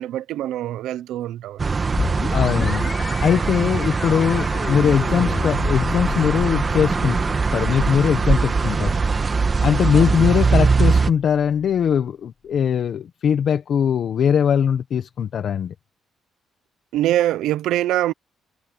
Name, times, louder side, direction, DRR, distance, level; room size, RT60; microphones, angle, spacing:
voice 1, 0.0-1.7 10.0-10.1 16.9-18.1, right 13 dB, 85° right, 0.8 m, -23 dB
sound 1, 1.6-11.1, right 4 dB, 30° right, 1.8 m, -21 dB
sound 2, 2.0-11.5, left 5 dB, 40° left, 3.3 m, -32 dB
voice 2, 2.3-2.8 3.2-7.2 7.5-9.0 9.6-15.7, left 8 dB, 60° left, 1.3 m, -20 dB
cardioid pair, 90°, 0 cm